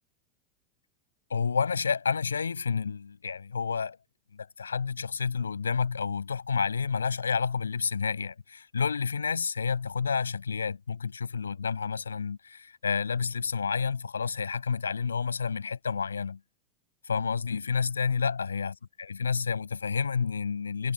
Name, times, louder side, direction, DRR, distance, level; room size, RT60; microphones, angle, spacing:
voice 1, 1.3-4.0 4.4-16.4 17.1-20.9, left 5 dB, 85° left, 7.1 m, -30 dB
figure-of-eight pair, 85°, 0 cm